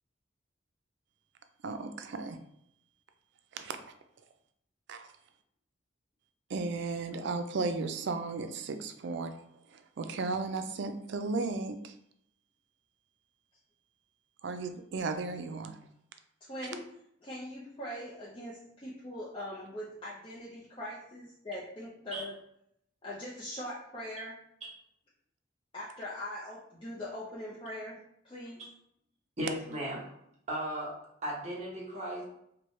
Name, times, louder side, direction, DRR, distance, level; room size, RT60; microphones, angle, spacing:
voice 1, 1.6-2.4 3.5-3.8 4.9-5.1 6.5-9.3 9.7-11.9 14.4-15.8, right 3 dB, 65° right, 7 dB, 0.4 m, -35 dB
voice 2, 16.4-16.9 17.2-22.3 23.0-24.4 25.7-28.0 28.2-28.6, left 1 dB, 30° left, -7 dB, 0.6 m, -41 dB
voice 3, 29.4-30.0 30.5-30.9 31.2-32.2, equal, 35° right, -4 dB, 1.2 m, -35 dB
4.6 x 2.2 x 3.1 m, 0.73 s
head